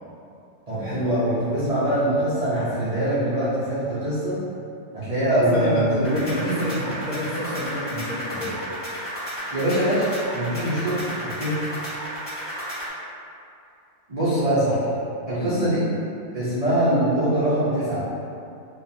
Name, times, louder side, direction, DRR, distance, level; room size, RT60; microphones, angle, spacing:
voice 1, 0.7-4.4 4.9-6.1 9.5-11.6 14.1-14.9 15.3-15.9 16.3-18.0, right 1 dB, 65° right, -12 dB, 0.3 m, -23 dB
voice 2, 5.3-8.6 15.4-15.6, equal, 75° left, -7 dB, 1.2 m, -28 dB
sound 1, 6.0-12.9, equal, 40° left, 1.5 m, -33 dB
2.9 x 2.3 x 2.5 m, 2.6 s
omnidirectional pair, 1.5 m